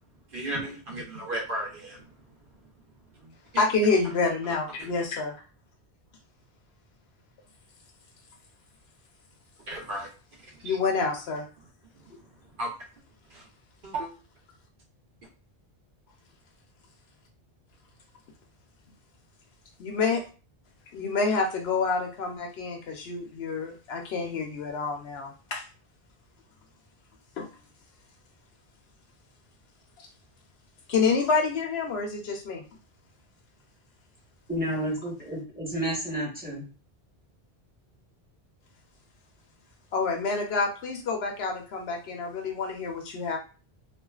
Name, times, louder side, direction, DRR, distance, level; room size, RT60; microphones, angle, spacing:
voice 1, 0.3-2.0 3.2-3.3 4.8-4.9 9.7-10.1 10.6-10.8 12.6-12.7 13.3-13.4 13.8-14.1, right 1 dB, 60° right, -1 dB, 0.9 m, -34 dB
voice 2, 3.6-5.3 10.6-11.5 19.8-20.2 20.9-25.6 27.4-27.5 30.9-32.6 39.9-43.4, left 4 dB, 75° left, 2 dB, 0.9 m, -28 dB
voice 3, 34.5-36.7, right 1 dB, 10° right, -6 dB, 1.1 m, -31 dB
2.4 x 2.4 x 2.3 m, 0.33 s
omnidirectional pair, 1.1 m